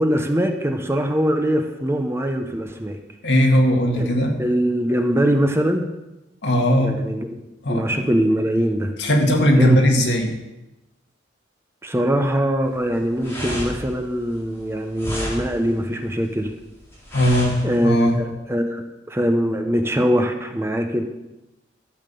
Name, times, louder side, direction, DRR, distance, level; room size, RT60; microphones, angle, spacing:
voice 1, 0.0-3.0 3.9-4.1 4.4-5.9 6.8-8.9 9.6-9.8 11.8-16.5 17.6-21.0, equal, 15° right, 5 dB, 0.9 m, -22 dB
voice 2, 3.2-4.4 6.4-7.0 7.6-8.0 9.0-10.3 17.1-18.2, equal, 70° left, 2 dB, 1.9 m, -18 dB
sound 1, 12.6-18.1, equal, 15° left, 4.0 m, -32 dB
12.5 x 7.5 x 6.8 m, 0.97 s
head